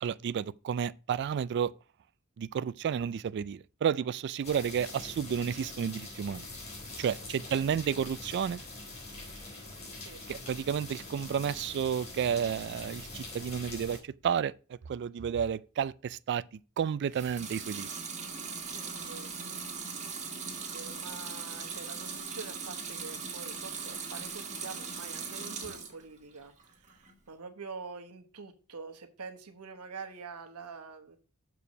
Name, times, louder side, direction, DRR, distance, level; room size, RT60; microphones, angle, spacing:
voice 1, 0.0-1.7 2.4-6.4 7.0-8.6 10.3-14.5 14.9-16.4 16.8-17.9, right 8 dB, 50° right, 0.3 m, -31 dB
sound 1, 4.4-14.0, left 2 dB, 30° left, 3.8 m, -44 dB
Water tap faucet / Sink (filling or washing) / Liquid, 17.1-26.0 26.4-27.1, right 5 dB, 30° right, 1.6 m, -39 dB
voice 2, 18.6-19.3 20.2-31.2, right 4 dB, 85° right, 1.2 m, -46 dB
6.9 x 4.7 x 6.1 m
head